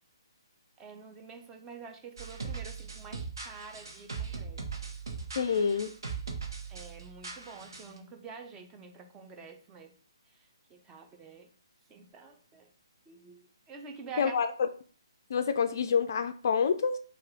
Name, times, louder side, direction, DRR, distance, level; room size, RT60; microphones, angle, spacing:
voice 1, 0.8-4.6 6.7-9.9 10.3-11.5 11.9-12.7 13.1-14.4, right 5 dB, 15° right, 0.6 m, -47 dB
Dubby Beat, 2.2-8.0, right 5 dB, 55° right, 1.1 m, -40 dB
voice 2, 5.4-5.9 14.2-14.5 15.3-17.0, left 6 dB, 45° left, 0.4 m, -27 dB
5.2 x 2.4 x 3.6 m
figure-of-eight pair, 135°, 3 cm